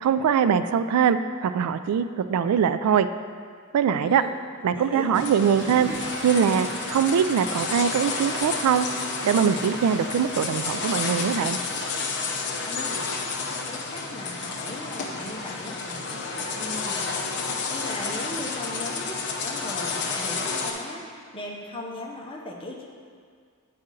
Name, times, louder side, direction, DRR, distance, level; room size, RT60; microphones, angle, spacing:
voice 1, 0.0-3.1 3.7-4.2 4.6-5.9 6.2-8.9 9.2-11.6, right 7 dB, 90° right, 12 dB, 0.3 m, -22 dB
voice 2, 4.0-4.3 4.7-5.1 12.7-13.1 13.6-22.9, left 1 dB, 25° left, -2 dB, 0.8 m, -38 dB
sound 1, 5.1-20.7, left 4 dB, 55° left, 0.6 m, -31 dB
Water / Toilet flush, 5.4-13.2, right 1 dB, 55° right, 0.8 m, -41 dB
8.7 x 4.2 x 3.8 m, 2.1 s
head